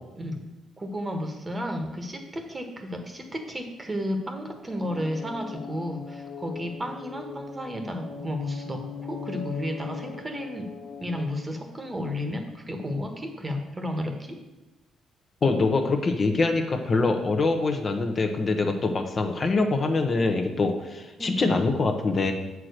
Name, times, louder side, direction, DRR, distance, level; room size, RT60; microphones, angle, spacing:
voice 1, 0.8-10.7 11.0-14.4 21.2-21.6, equal, 20° right, 4 dB, 1.2 m, -32 dB
sound 1, 4.7-11.3, left 6 dB, 65° left, 1.3 m, -39 dB
voice 2, 15.4-22.3, left 3 dB, 40° left, 4 dB, 0.9 m, -24 dB
7.5 x 4.7 x 6.5 m, 1.1 s
cardioid pair, 90°, 0 cm